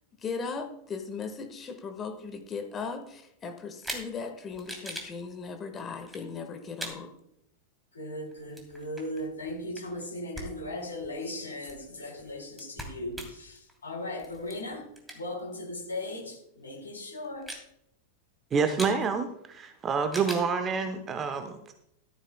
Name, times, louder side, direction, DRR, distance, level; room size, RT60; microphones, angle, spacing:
voice 1, 0.2-7.1, left 5 dB, 25° left, 7 dB, 1.4 m, -37 dB
sound 1, 3.8-4.1 4.5-5.1 6.0-6.2 6.8-7.0 8.3-10.1 10.3-10.5 10.8-15.5 15.9-16.0 16.7-16.9 17.2-17.6 18.8-19.0 20.1-20.5, right 1 dB, 5° right, 3.1 m, -41 dB
voice 2, 7.9-17.5, left 1 dB, 70° left, 0 dB, 4.0 m, -38 dB
voice 3, 18.5-21.7, right 5 dB, 25° right, 8 dB, 0.9 m, -28 dB
14.5 x 13.5 x 2.2 m, 0.77 s
figure-of-eight pair, 90°, 0 cm